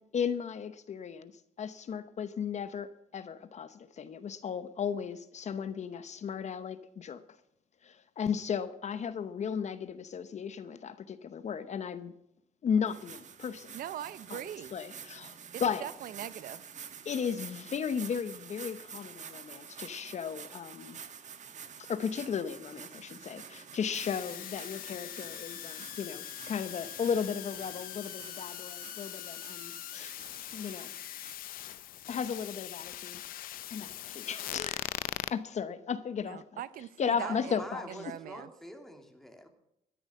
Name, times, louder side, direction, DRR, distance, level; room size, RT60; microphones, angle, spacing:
voice 1, 0.1-1.3 1.6-7.2 7.8-12.1 12.6-13.7 14.3-14.4 14.7-15.4 15.6-15.8 17.0-21.0 21.8-30.1 30.5-30.9 32.1-34.9 35.3-36.6 37.0-37.9, left 7 dB, 55° left, 0.9 m, -35 dB
sound 1, 12.9-31.3, right 7 dB, 55° right, 1.3 m, -49 dB
voice 2, 13.7-14.7 15.8-16.6 36.2-38.5, right 11 dB, 75° right, 0.6 m, -41 dB
sound 2, 23.9-35.3, left 13 dB, 80° left, 0.5 m, -41 dB
voice 3, 37.2-39.5, equal, ahead, 2.6 m, -45 dB
13.0 x 10.5 x 7.6 m
cardioid pair, 95°, 15 cm